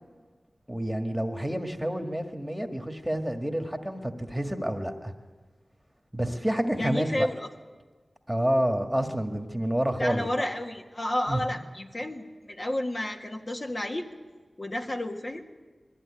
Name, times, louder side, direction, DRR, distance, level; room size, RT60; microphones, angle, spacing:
voice 1, 0.7-5.1 6.1-7.3 8.3-10.3 11.3-11.4, right 1 dB, ahead, 5 dB, 1.8 m, -28 dB
voice 2, 6.8-7.5 10.0-14.1 14.6-15.4, left 1 dB, 45° left, 2 dB, 1.8 m, -31 dB
21.0 x 14.0 x 10.0 m, 1.4 s
wide cardioid pair, 50°, 0 cm